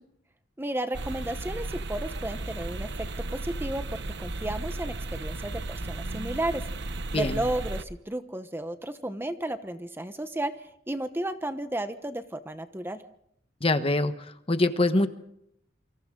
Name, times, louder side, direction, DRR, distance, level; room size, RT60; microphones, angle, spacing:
voice 1, 0.6-13.0, right 1 dB, 10° right, 9 dB, 1.0 m, -33 dB
sound 1, 0.9-7.8, right 2 dB, 60° right, 1.0 m, -35 dB
voice 2, 13.6-14.1 14.5-15.1, left 2 dB, 30° left, 9 dB, 1.3 m, -23 dB
28.5 x 25.0 x 3.9 m, 0.73 s
head